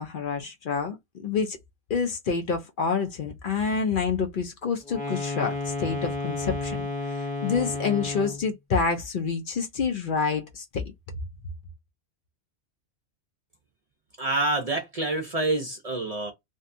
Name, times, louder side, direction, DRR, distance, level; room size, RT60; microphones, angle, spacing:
voice 1, 0.0-1.6 1.9-10.8, left 5 dB, 60° left, 0.6 m, -28 dB
sound 1, 4.8-8.5, left 3 dB, 10° left, 0.7 m, -32 dB
voice 2, 14.2-16.3, right 2 dB, 45° right, 0.5 m, -27 dB
2.6 x 2.2 x 2.5 m
omnidirectional pair, 1.2 m